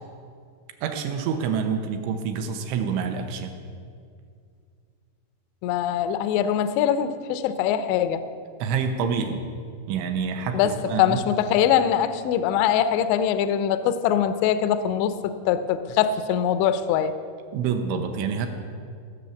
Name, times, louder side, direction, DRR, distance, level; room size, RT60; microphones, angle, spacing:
voice 1, 0.8-3.6 8.6-9.4 9.9-11.2 17.5-18.5, right 6 dB, 80° right, 6 dB, 3.0 m, -27 dB
voice 2, 5.6-8.3 10.5-17.1, left 9 dB, 85° left, 10 dB, 2.5 m, -23 dB
16.5 x 6.8 x 7.1 m, 2.3 s
omnidirectional pair, 5.8 m